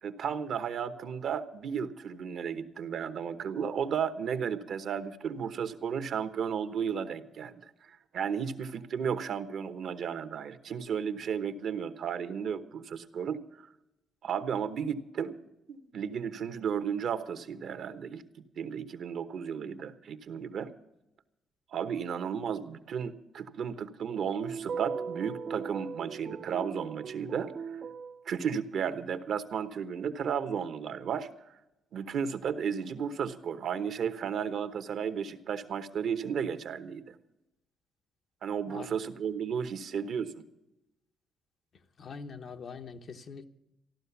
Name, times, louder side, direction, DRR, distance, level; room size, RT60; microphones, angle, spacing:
voice 1, 0.0-13.4 14.2-15.4 15.7-18.2 18.6-20.7 21.7-27.8 28.3-31.3 31.9-37.2 38.4-40.3, right 7 dB, 65° right, 1.1 m, -34 dB
sound 1, 24.0-28.2, right 6 dB, 50° right, 0.5 m, -39 dB
voice 2, 42.0-43.5, left 5 dB, 55° left, 1.0 m, -43 dB
14.5 x 12.0 x 7.0 m
cardioid pair, 90°, 0 cm